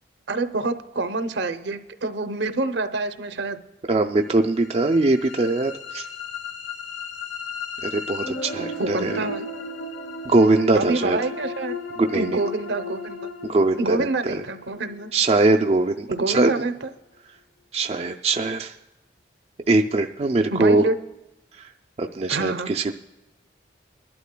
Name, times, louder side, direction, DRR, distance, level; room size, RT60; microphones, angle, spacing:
voice 1, 0.3-3.6 8.6-9.5 10.7-11.7 12.1-13.2 13.8-15.1 16.1-16.9 20.5-20.9 22.3-22.7, right 3 dB, 70° right, 9 dB, 0.6 m, -27 dB
voice 2, 3.9-6.1 7.8-9.1 10.3-11.2 12.0-12.4 13.4-14.4 15.1-16.5 17.7-18.7 19.7-20.8 21.6-21.7 22.0-23.0, right 2 dB, 35° right, 3 dB, 0.4 m, -21 dB
sound 1, 4.4-16.4, left 4 dB, 80° left, 1.1 m, -35 dB
22.5 x 11.5 x 2.2 m, 0.99 s
head